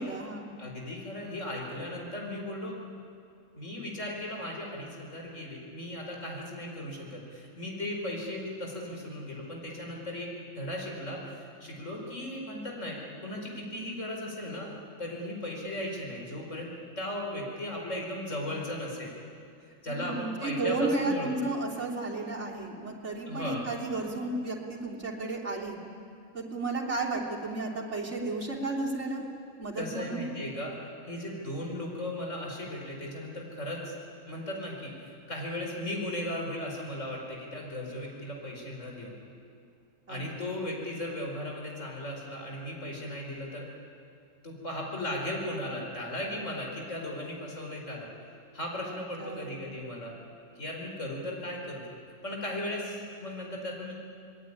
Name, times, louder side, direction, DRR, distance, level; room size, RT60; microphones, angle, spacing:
voice 1, 0.0-0.5 19.9-25.8 26.3-29.2 29.6-30.2 40.1-40.6 48.8-49.6, right 2 dB, 55° right, -2 dB, 3.6 m, -33 dB
voice 2, 0.6-2.8 3.6-14.7 15.0-19.1 19.8-21.3 23.3-23.6 29.8-30.8 31.1-33.9 34.3-39.2 40.1-43.7 44.4-48.1 48.5-50.1 50.6-51.8 52.2-53.9, left 1 dB, 60° left, 0 dB, 5.1 m, -36 dB
27.0 x 20.5 x 9.9 m, 2.4 s
omnidirectional pair, 1.5 m